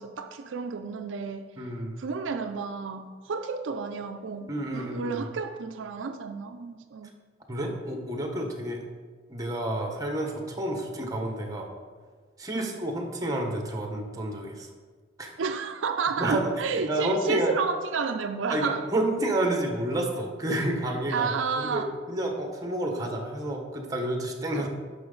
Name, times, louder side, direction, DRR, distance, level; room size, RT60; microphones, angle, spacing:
voice 1, 0.0-1.5 2.0-7.1 12.5-12.7 15.4-18.8 21.1-21.9 24.5-24.7, right 5 dB, 80° right, 7 dB, 0.5 m, -31 dB
voice 2, 1.6-2.0 4.5-5.2 7.5-8.9 9.3-11.7 12.4-14.7 15.2-15.4 16.2-16.5 16.9-17.5 18.5-21.3 21.6-24.7, right 1 dB, 20° right, 3 dB, 1.1 m, -30 dB
10.5 x 5.8 x 3.9 m, 1.5 s
head